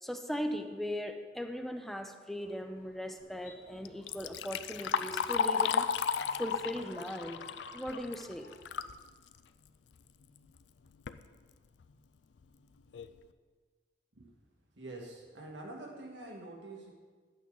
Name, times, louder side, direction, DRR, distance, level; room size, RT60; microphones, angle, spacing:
voice 1, 0.0-5.9 6.3-7.4 7.7-8.5, equal, ahead, 6 dB, 0.5 m, -38 dB
sound 1, 2.3-8.8, left 3 dB, 50° left, 1.1 m, -57 dB
Liquid, 3.9-9.0 9.4-9.5 10.4-10.5 10.9-11.2 11.8-11.9 12.4-12.5 12.9-13.2, left 7 dB, 70° left, 0.4 m, -33 dB
voice 2, 14.7-16.9, right 2 dB, 80° right, 0 dB, 1.7 m, -46 dB
10.5 x 8.5 x 3.9 m, 1.5 s
head